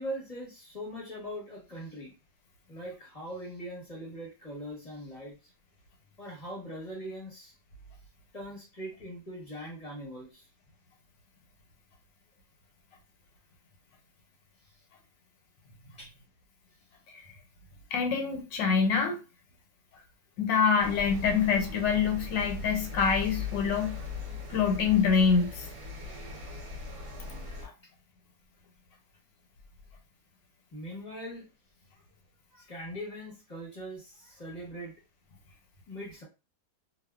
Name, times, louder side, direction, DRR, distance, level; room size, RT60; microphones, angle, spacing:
voice 1, 0.0-2.1 2.7-5.4 6.2-7.5 8.3-10.5 16.0-16.1 30.7-31.5 32.5-34.9 35.9-36.2, equal, 30° left, 0.8 m, -41 dB
voice 2, 17.9-19.2 20.4-24.0 24.5-25.7 27.6-27.7, left 6 dB, 85° left, 1.4 m, -25 dB
sound 1, 20.8-27.7, left 3 dB, 50° right, 0.9 m, -39 dB
2.7 x 2.3 x 2.3 m
omnidirectional pair, 1.9 m